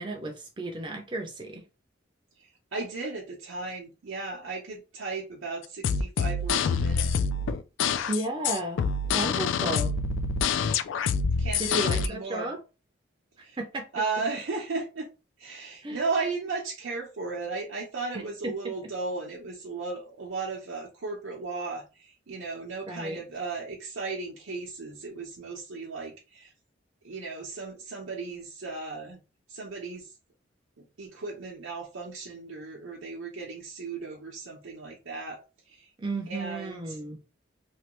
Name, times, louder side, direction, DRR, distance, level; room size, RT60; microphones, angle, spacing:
voice 1, 0.0-1.6 8.1-8.8 9.1-9.9 11.6-12.6 13.6-13.8 15.8-16.0 18.1-18.5 22.9-23.2 36.0-37.2, right 1 dB, 25° right, 0.4 m, -33 dB
voice 2, 2.4-7.1 11.4-12.5 13.4-13.6 13.9-15.1 15.4-26.5 27.0-29.2 29.5-30.1 30.8-35.4 35.7-35.9 36.3-37.0, right 4 dB, 85° right, 0.7 m, -35 dB
sound 1, 5.6-12.1, left 5 dB, 80° left, 0.3 m, -26 dB
3.1 x 2.2 x 2.9 m
head